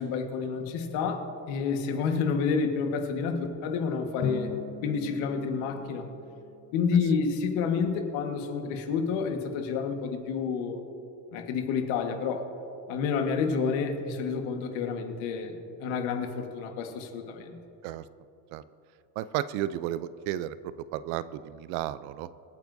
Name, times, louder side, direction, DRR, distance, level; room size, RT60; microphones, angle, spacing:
voice 1, 0.0-4.5 4.8-6.1 6.7-10.8 11.3-12.5 12.9-17.6, left 5 dB, 75° left, 4 dB, 1.6 m, -29 dB
Drum, 4.2-6.9, left 7 dB, 40° left, 0.9 m, -38 dB
voice 2, 19.2-20.6 20.9-22.3, right 13 dB, 75° right, 16 dB, 0.6 m, -33 dB
24.5 x 9.1 x 2.7 m, 2.7 s
cardioid pair, 135°, 48 cm